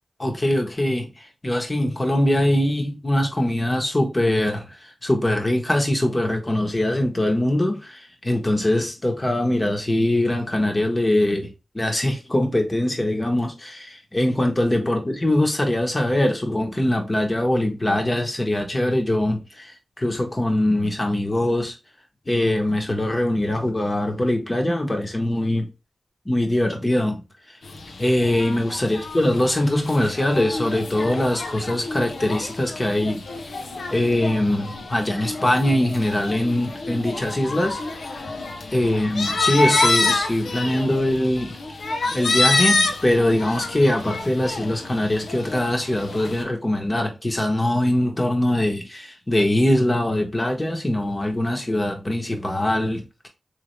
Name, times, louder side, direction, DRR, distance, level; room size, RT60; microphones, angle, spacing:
voice 1, 0.2-1.1 1.4-4.7 5.0-21.8 22.3-25.7 26.2-27.2 28.0-33.6 33.9-37.8 38.1-38.2 38.7-41.6 42.1-53.3, left 1 dB, 25° left, 1.1 m, -22 dB
sound 1, 27.6-46.4, left 3 dB, 80° left, 0.7 m, -27 dB
3.3 x 3.3 x 3.1 m
cardioid pair, 65°, 0 cm